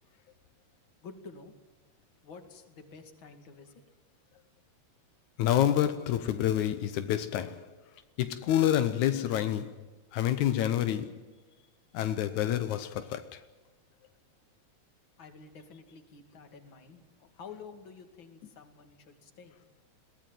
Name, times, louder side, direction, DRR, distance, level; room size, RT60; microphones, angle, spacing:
voice 1, 1.0-1.5 2.2-3.7 15.2-17.0 17.3-19.6, left 5 dB, 45° left, 3.0 m, -49 dB
voice 2, 5.4-7.7 8.2-9.8 10.1-11.2 11.9-13.4, left 11 dB, 85° left, 2.4 m, -28 dB
22.0 x 17.5 x 9.2 m
omnidirectional pair, 3.3 m